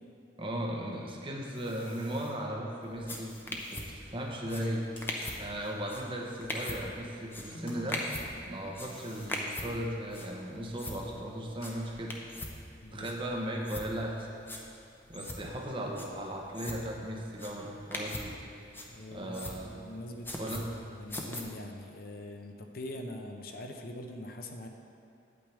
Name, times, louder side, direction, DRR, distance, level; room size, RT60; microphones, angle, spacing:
voice 1, 0.4-8.0 8.5-12.1 12.9-14.3 15.1-18.4 19.1-19.7 20.4-20.7, equal, 30° right, -1 dB, 1.0 m, -37 dB
sound 1, 0.9-2.3 3.2-7.1 7.6-9.3 10.1-10.3 10.8-12.1, left 1 dB, 30° left, 1.4 m, -56 dB
sound 2, 2.9-21.4, left 1 dB, 10° left, 0.7 m, -42 dB
sound 3, 7.5-11.1, equal, 80° left, 1.9 m, -52 dB
voice 2, 12.8-13.1 15.2-15.3 18.9-24.7, left 1 dB, 50° left, 3 dB, 0.6 m, -43 dB
9.2 x 8.6 x 3.4 m, 2.5 s
head